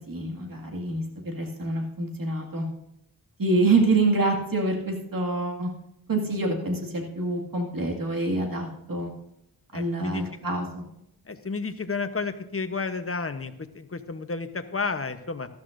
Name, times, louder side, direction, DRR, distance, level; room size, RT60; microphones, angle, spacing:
voice 1, 0.1-2.6 3.4-5.7 6.1-9.1 9.7-10.9, right 2 dB, 65° right, 0 dB, 2.1 m, -26 dB
voice 2, 9.7-10.2 11.3-15.5, left 4 dB, 40° left, 9 dB, 0.9 m, -31 dB
13.0 x 13.0 x 2.6 m, 0.80 s
wide cardioid pair, 60°, 37 cm